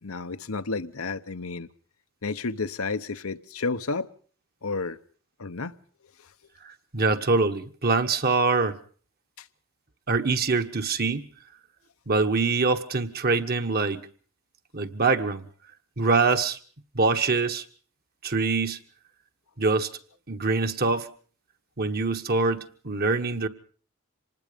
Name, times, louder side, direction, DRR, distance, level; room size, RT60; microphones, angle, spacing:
voice 1, 0.0-1.7 2.2-4.1 4.6-5.0 5.4-5.8 9.4-9.5, left 4 dB, 90° left, 1.0 m, -31 dB
voice 2, 6.6-8.8 10.1-11.3 12.1-14.0 14.7-15.5 16.0-16.6 16.9-17.6 18.2-18.8 19.6-19.9 20.3-21.1 21.8-23.5, right 3 dB, 45° right, 1.3 m, -24 dB
26.0 x 20.0 x 5.2 m
head